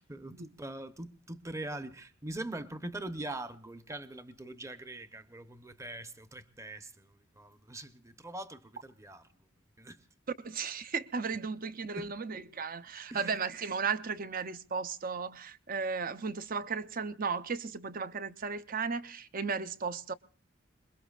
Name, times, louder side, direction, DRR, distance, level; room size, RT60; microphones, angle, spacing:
voice 1, 0.0-9.2 9.8-10.0 11.9-12.1 13.1-13.4, right 1 dB, 15° right, 0.9 m, -42 dB
voice 2, 10.4-20.1, right 5 dB, 45° right, 0.7 m, -35 dB
26.5 x 22.0 x 2.4 m
head